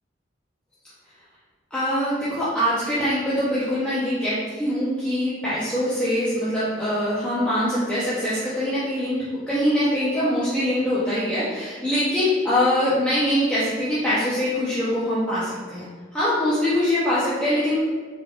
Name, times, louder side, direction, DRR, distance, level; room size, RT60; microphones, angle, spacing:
voice 1, 1.7-9.2 9.5-17.8, left 1 dB, 5° left, -11 dB, 0.6 m, -23 dB
3.6 x 3.5 x 2.3 m, 1.5 s
head